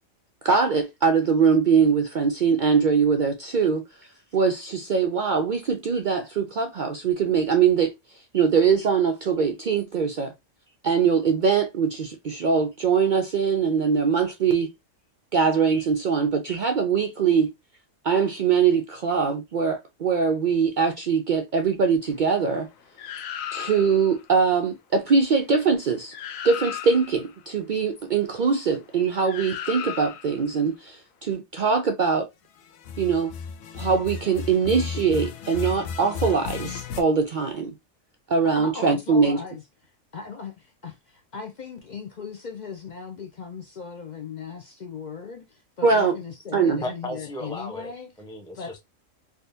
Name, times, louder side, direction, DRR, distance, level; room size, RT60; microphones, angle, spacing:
voice 1, 0.4-3.8 4.3-10.3 10.8-14.7 15.3-17.5 18.0-22.7 23.5-26.1 26.4-32.3 33.0-33.3 33.8-37.7 38.3-39.4 45.8-46.2 46.5-46.8, right 5 dB, 70° right, 0.4 m, -22 dB
sound 1, 23.0-24.1 25.8-25.9 26.1-27.3 29.2-30.4 32.7-37.0, left 7 dB, 85° left, 1.1 m, -34 dB
voice 2, 38.5-39.6 40.1-48.1 48.5-48.7, left 5 dB, 65° left, 0.4 m, -38 dB
voice 3, 46.8-48.8, left 1 dB, 5° left, 0.5 m, -35 dB
3.5 x 2.7 x 2.6 m
omnidirectional pair, 1.4 m